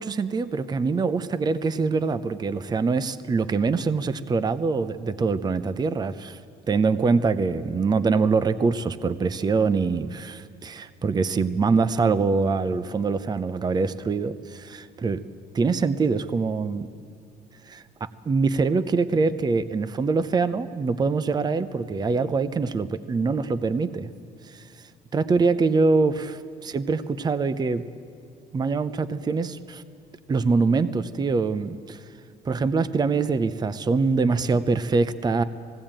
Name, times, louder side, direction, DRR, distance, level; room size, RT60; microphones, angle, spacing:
voice 1, 0.0-6.4 6.7-15.2 15.5-16.9 17.7-24.1 24.4-24.6 25.1-27.8 28.5-29.8 30.3-32.0 32.4-35.4, right 4 dB, 25° right, 13 dB, 0.6 m, -24 dB
19.5 x 16.5 x 8.9 m, 2.4 s
cardioid pair, 110°, 17 cm